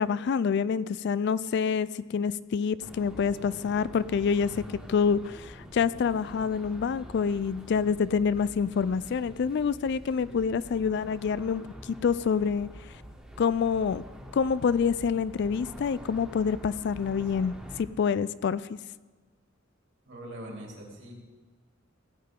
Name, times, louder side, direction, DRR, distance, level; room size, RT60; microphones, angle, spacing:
voice 1, 0.0-4.6 4.9-12.7 13.4-14.0 14.3-18.8, left 6 dB, 60° left, 17 dB, 0.3 m, -27 dB
sound 1, 2.8-17.8, equal, 5° right, 1.4 m, -46 dB
voice 2, 20.0-21.2, right 1 dB, 60° right, -1 dB, 3.1 m, -42 dB
16.5 x 9.3 x 3.7 m, 1.4 s
head